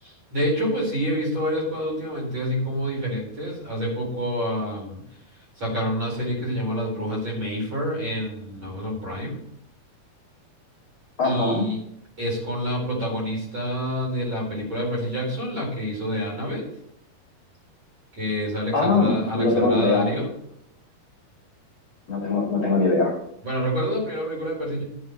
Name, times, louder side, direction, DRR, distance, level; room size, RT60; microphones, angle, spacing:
voice 1, 0.0-5.0 5.6-9.4 11.2-11.8 12.2-16.7 18.1-20.3 23.4-24.8, equal, 30° right, -2 dB, 5.0 m, -27 dB
voice 2, 11.2-11.6 18.7-20.1 22.1-23.2, left 3 dB, 35° left, -2 dB, 2.6 m, -21 dB
12.0 x 7.7 x 5.3 m, 0.70 s
omnidirectional pair, 4.5 m